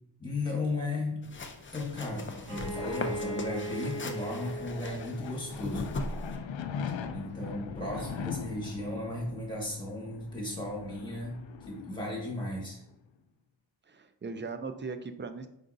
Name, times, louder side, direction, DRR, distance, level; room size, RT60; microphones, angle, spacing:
voice 1, 0.2-1.2 1.7-6.0 7.1-11.4 11.7-12.8, left 2 dB, 10° left, -3 dB, 1.5 m, -35 dB
sound 1, 1.2-6.4, left 2 dB, 25° left, 0.5 m, -39 dB
sound 2, 1.6-12.9, left 6 dB, 80° left, 0.5 m, -42 dB
Bowed string instrument, 2.4-6.1, right 1 dB, 60° right, 1.2 m, -39 dB
voice 2, 7.8-8.2 13.9-15.5, right 4 dB, 25° right, 9 dB, 0.3 m, -39 dB
4.8 x 3.9 x 2.5 m, 0.81 s
wide cardioid pair, 95°, 46 cm